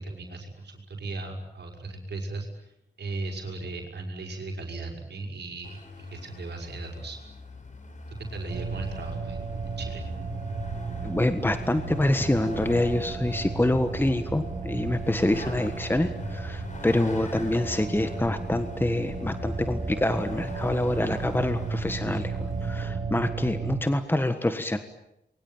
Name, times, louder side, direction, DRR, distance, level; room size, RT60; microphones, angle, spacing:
voice 1, 0.0-7.2 8.1-10.0, right 3 dB, 75° right, 2 dB, 5.4 m, -37 dB
Vehicle, 5.6-22.9, left 2 dB, 45° left, 4.6 m, -42 dB
sound 1, 8.5-23.8, right 4 dB, 55° right, 4.5 m, -34 dB
voice 2, 11.0-24.8, left 1 dB, 10° left, 9 dB, 1.5 m, -26 dB
28.0 x 23.0 x 9.0 m, 0.85 s
wide cardioid pair, 105°, 18 cm